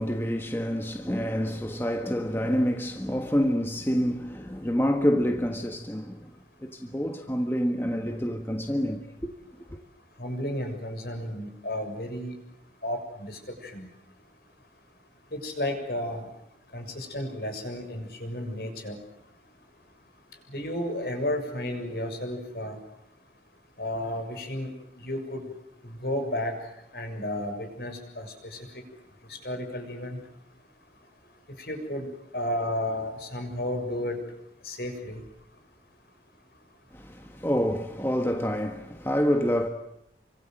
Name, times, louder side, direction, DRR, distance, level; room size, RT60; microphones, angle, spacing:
voice 1, 0.0-6.3 6.6-9.1 36.9-39.7, equal, 15° left, 1.5 m, -27 dB
voice 2, 10.2-12.3 12.8-13.9 15.3-16.3 16.7-19.0 20.5-22.8 23.8-24.7 25.0-25.5 25.8-26.5 26.9-28.6 29.3-30.2 31.6-32.1 32.3-34.2 34.6-35.2, left 1 dB, 60° left, 6.9 m, -32 dB
30.0 x 25.0 x 7.8 m
head